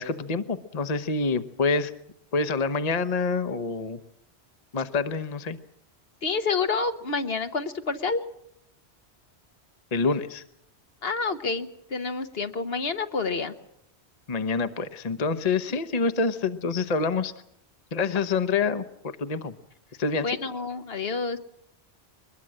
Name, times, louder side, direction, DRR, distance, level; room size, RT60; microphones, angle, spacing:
voice 1, 0.0-1.9 2.3-4.0 4.7-5.6 9.9-10.4 14.3-17.3 17.9-19.6 20.0-20.4, left 4 dB, 40° left, 10 dB, 1.0 m, -27 dB
voice 2, 6.2-8.2 11.0-13.5 15.7-15.8 18.0-18.2 20.2-21.4, left 4 dB, 65° left, 8 dB, 1.5 m, -28 dB
23.0 x 21.0 x 7.6 m, 0.74 s
omnidirectional pair, 1.1 m